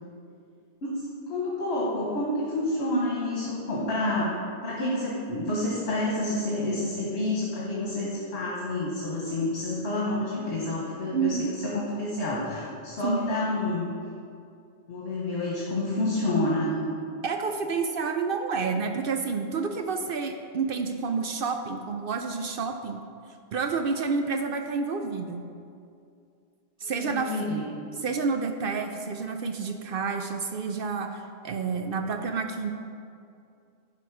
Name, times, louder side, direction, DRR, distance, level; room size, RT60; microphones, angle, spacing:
voice 1, 1.3-4.3 4.6-11.4 11.6-13.9 14.9-16.8 26.8-27.6, left 1 dB, 70° left, -5 dB, 1.5 m, -29 dB
voice 2, 11.1-11.5 13.0-13.2 17.2-23.0 23.5-25.5 26.8-27.4 28.0-32.7, right 5 dB, 65° right, 6 dB, 0.7 m, -29 dB
10.5 x 5.3 x 4.8 m, 2.4 s
omnidirectional pair, 1.1 m